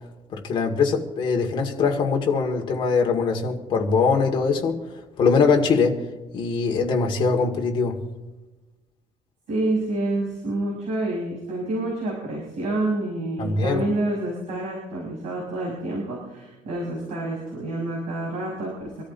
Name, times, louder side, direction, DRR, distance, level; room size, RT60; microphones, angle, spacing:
voice 1, 0.3-4.8 5.2-6.0 6.3-8.0 13.4-13.8, left 5 dB, 35° left, 1 dB, 2.1 m, -22 dB
voice 2, 9.5-19.0, right 2 dB, 55° right, -5 dB, 5.9 m, -28 dB
26.0 x 13.5 x 2.8 m, 1.1 s
cardioid pair, 180°, 14 cm